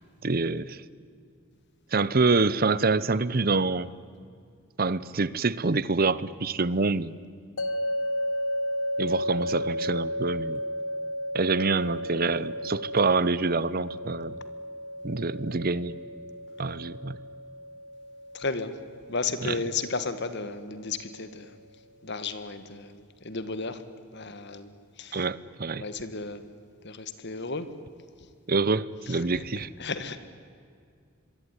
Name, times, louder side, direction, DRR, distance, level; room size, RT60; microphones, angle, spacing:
voice 1, 0.2-0.8 1.9-3.9 4.8-7.1 9.0-10.6 11.3-14.3 15.0-15.9 16.6-17.2 19.4-19.6 25.1-25.8 28.5-29.7, right 3 dB, 45° right, 0.8 m, -26 dB
sound 1, 7.6-20.7, equal, 80° left, 1.5 m, -34 dB
voice 2, 18.3-18.7 19.1-21.6 22.0-23.8 24.1-24.7 25.0-25.3 25.7-26.4 26.8-27.7 29.1-30.2, left 4 dB, 55° left, 1.8 m, -34 dB
27.0 x 22.5 x 9.9 m
head